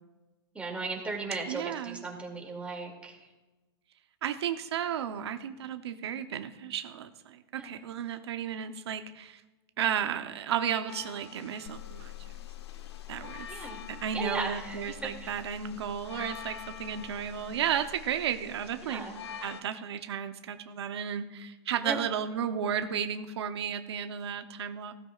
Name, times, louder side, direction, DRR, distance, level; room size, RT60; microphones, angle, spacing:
voice 1, 0.5-3.2 7.6-7.8 13.5-13.8 14.1-15.3 18.8-19.2 21.8-22.0, right 3 dB, 10° right, 0 dB, 2.5 m, -36 dB
voice 2, 1.5-2.0 4.2-9.4 9.8-12.1 13.1-19.0 19.4-24.9, right 8 dB, 85° right, 8 dB, 0.8 m, -33 dB
sound 1, 10.9-19.6, left 8 dB, 85° left, 1.0 m, -47 dB
sound 2, 11.7-19.5, left 15 dB, 55° left, 1.0 m, -48 dB
16.0 x 13.5 x 2.4 m, 1.1 s
hypercardioid pair, 125°, 13 cm